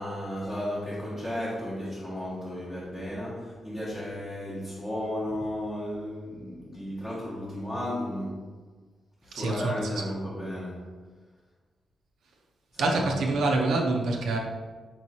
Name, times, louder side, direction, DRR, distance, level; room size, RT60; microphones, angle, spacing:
voice 1, 0.0-8.6 9.2-10.8 12.7-13.3, left 1 dB, 10° left, -9 dB, 0.8 m, -34 dB
voice 2, 9.3-10.0 12.8-14.4, right 2 dB, 85° right, 1 dB, 0.6 m, -26 dB
4.8 x 3.0 x 2.7 m, 1.4 s
wide cardioid pair, 160°, 0 cm